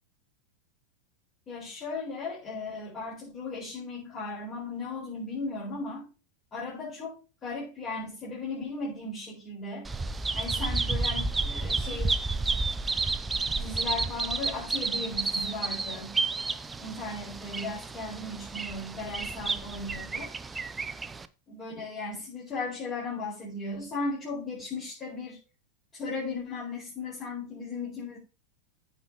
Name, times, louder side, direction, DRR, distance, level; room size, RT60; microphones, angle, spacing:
voice 1, 1.5-6.1 6.5-9.9 10.3-12.2 13.6-16.2 16.8-20.6 21.5-25.4 25.9-28.2, left 3 dB, 25° left, -7 dB, 4.5 m, -36 dB
Bird vocalization bird call bird song, 9.8-21.3, right 3 dB, 15° right, 0.6 m, -31 dB
15.0 x 5.4 x 2.9 m, 0.33 s
figure-of-eight pair, 90°, 0 cm